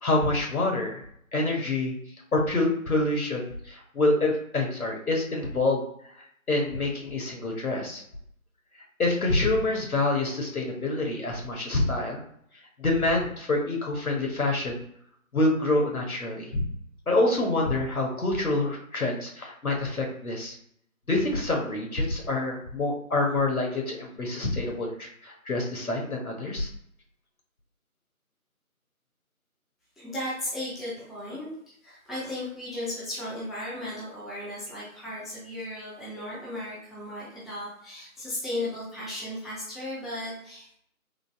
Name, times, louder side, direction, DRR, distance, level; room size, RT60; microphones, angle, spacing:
voice 1, 0.0-1.0 1.3-1.9 2.3-5.8 6.5-8.0 9.0-12.2 12.8-14.8 15.3-16.7 17.1-20.6 21.1-26.7, left 2 dB, 75° left, 0 dB, 1.3 m, -26 dB
voice 2, 30.0-31.5 31.8-40.7, left 1 dB, ahead, -8 dB, 0.5 m, -35 dB
3.8 x 2.2 x 3.5 m, 0.68 s
figure-of-eight pair, 165°, 43 cm